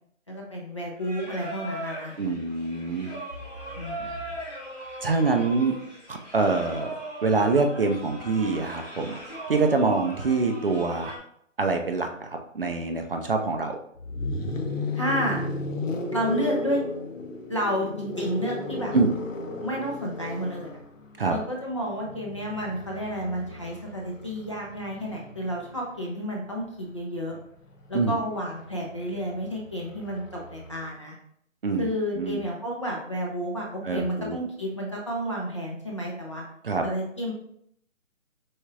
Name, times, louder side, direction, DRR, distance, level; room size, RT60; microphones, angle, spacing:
voice 1, 0.3-2.1 3.8-4.1 5.4-5.5 14.9-15.4 16.1-16.8 17.5-19.0 19.6-20.8 21.3-27.4 27.9-31.1 31.8-36.4 36.8-37.3, equal, 25° left, -2 dB, 0.6 m, -31 dB
Singing, 1.0-11.2, right 1 dB, ahead, 0.9 m, -39 dB
voice 2, 2.2-3.1 5.0-5.7 6.1-6.9 7.2-9.2 9.5-11.1 11.6-12.3 12.5-13.8 18.9-19.1 21.2-21.4 27.9-28.2 31.6-31.9 32.2-32.4 33.8-34.4 36.6-36.9, right 3 dB, 45° right, 5 dB, 0.5 m, -25 dB
sound 1, 14.0-25.9 27.2-30.8, left 2 dB, 75° left, 1.0 m, -35 dB
4.7 x 4.3 x 2.4 m, 0.69 s
hypercardioid pair, 165°, 39 cm